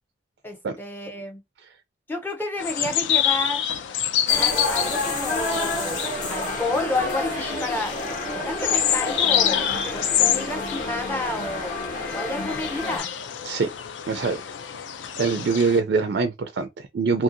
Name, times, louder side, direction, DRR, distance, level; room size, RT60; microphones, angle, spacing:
voice 1, 0.4-1.4 2.1-3.6 4.4-6.0 6.3-8.0 8.3-9.6 9.9-11.7 12.1-13.1, left 2 dB, 10° left, 0.5 m, -30 dB
sound 1, 2.6-15.8, left 10 dB, 85° left, 0.4 m, -27 dB
sound 2, 4.3-13.0, left 2 dB, 45° left, 1.2 m, -29 dB
voice 2, 14.1-14.4 15.2-17.2, right 4 dB, 65° right, 0.3 m, -23 dB
2.8 x 2.6 x 2.5 m
head